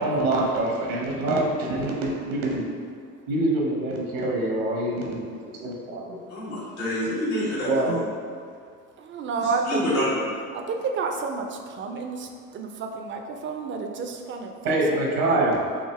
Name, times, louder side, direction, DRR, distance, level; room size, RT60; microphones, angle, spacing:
voice 1, 0.0-2.6 3.3-6.1 7.7-8.0 14.6-15.6, right 1 dB, 75° right, -2 dB, 0.9 m, -25 dB
voice 2, 6.3-8.0 9.3-10.3, left 1 dB, 85° left, -9 dB, 1.3 m, -27 dB
voice 3, 9.1-10.1 10.7-11.4 11.8-15.4, right 4 dB, 30° right, 4 dB, 0.4 m, -30 dB
3.6 x 2.5 x 3.2 m, 2.2 s
hypercardioid pair, 55°, 42 cm